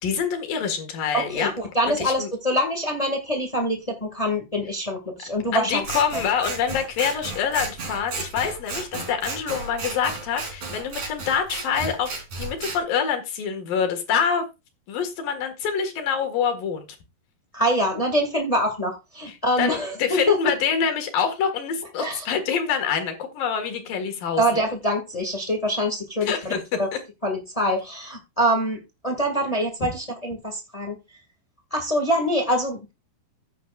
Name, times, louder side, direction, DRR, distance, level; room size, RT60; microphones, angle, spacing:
voice 1, 0.0-1.5 1.9-2.3 5.5-12.1 12.4-14.5 14.9-16.9 19.3-24.6 26.2-26.6 29.8-29.9, left 7 dB, 65° left, 5 dB, 3.3 m, -26 dB
voice 2, 1.1-5.8 17.5-20.3 22.0-22.2 24.4-26.5 26.8-26.9 27.2-31.0 31.7-32.9, equal, 45° left, 3 dB, 0.4 m, -25 dB
Scissors, 5.8-12.8, right 3 dB, 50° right, 4.6 m, -33 dB
14.5 x 9.4 x 2.4 m, 0.24 s
omnidirectional pair, 4.6 m